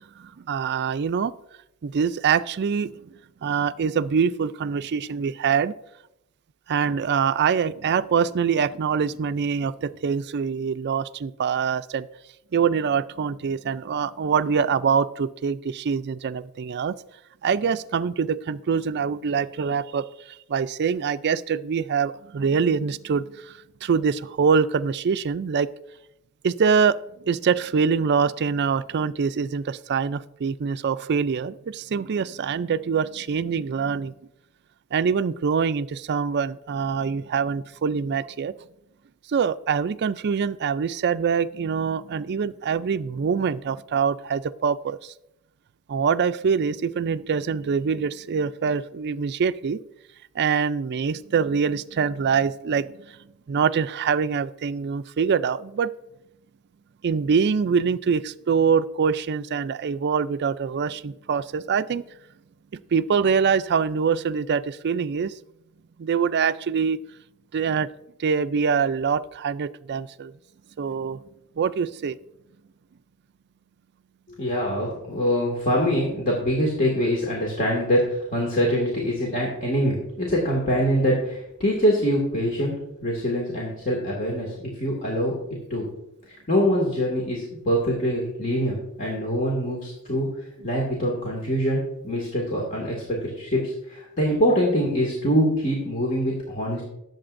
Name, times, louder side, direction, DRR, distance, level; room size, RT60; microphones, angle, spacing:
voice 1, 0.2-1.3 1.8-3.1 3.4-5.7 6.7-12.1 12.5-17.0 17.4-23.5 23.8-25.7 26.4-27.0 27.3-34.1 34.9-38.5 39.3-45.1 45.9-49.8 50.4-53.2 53.5-55.9 57.0-62.0 62.7-65.4 66.0-67.0 67.5-67.9 68.2-70.3 70.8-71.2 71.6-72.2, right 6 dB, 50° right, 15 dB, 0.4 m, -24 dB
voice 2, 74.4-82.7 83.0-85.3 85.7-85.9 86.5-90.3 90.6-96.8, equal, 40° left, -2 dB, 2.1 m, -24 dB
19.5 x 7.7 x 2.6 m, 0.85 s
head